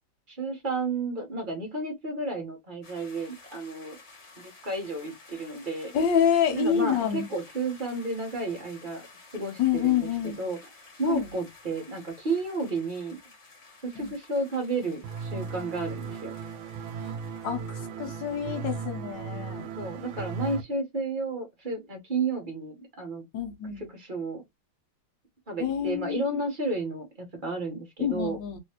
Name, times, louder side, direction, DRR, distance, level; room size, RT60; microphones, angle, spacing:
voice 1, 0.3-4.0 4.4-5.9 6.5-9.1 9.3-10.6 11.0-13.2 13.8-16.3 19.8-23.2 23.8-24.4 25.5-28.4, right 3 dB, 35° right, 0.9 m, -32 dB
sound 1, 2.8-18.5, left 3 dB, 40° left, 1.3 m, -53 dB
voice 2, 5.9-7.3 9.6-10.4 11.0-11.3 13.9-14.1 17.0-17.1 17.4-19.7 23.3-23.9 25.6-26.4 28.0-28.6, left 8 dB, 65° left, 1.3 m, -27 dB
sound 2, 15.0-20.6, right 6 dB, 80° right, 1.4 m, -36 dB
3.2 x 3.1 x 2.9 m
omnidirectional pair, 2.3 m